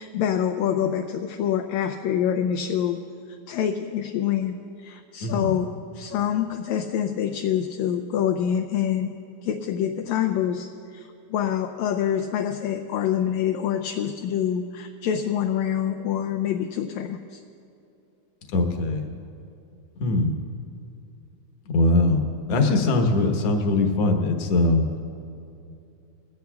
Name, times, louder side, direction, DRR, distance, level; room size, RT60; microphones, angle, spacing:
voice 1, 0.0-3.0 3.5-9.1 9.4-17.4, left 9 dB, 80° left, 6 dB, 1.8 m, -26 dB
voice 2, 5.2-5.5 18.5-19.0 20.0-20.3 21.7-22.2 22.5-24.9, left 2 dB, 60° left, 3 dB, 2.0 m, -21 dB
22.0 x 16.5 x 2.3 m, 2.6 s
omnidirectional pair, 3.5 m